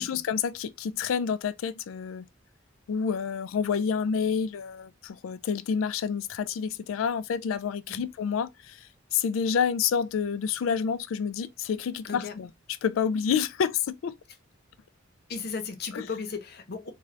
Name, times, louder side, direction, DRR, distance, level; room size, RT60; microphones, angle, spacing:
voice 1, 0.0-2.2 2.9-12.5 12.8-14.1 15.9-16.0, left 6 dB, 90° left, 0.3 m, -28 dB
voice 2, 15.3-16.9, left 5 dB, 55° left, 0.7 m, -35 dB
3.7 x 2.2 x 3.2 m
head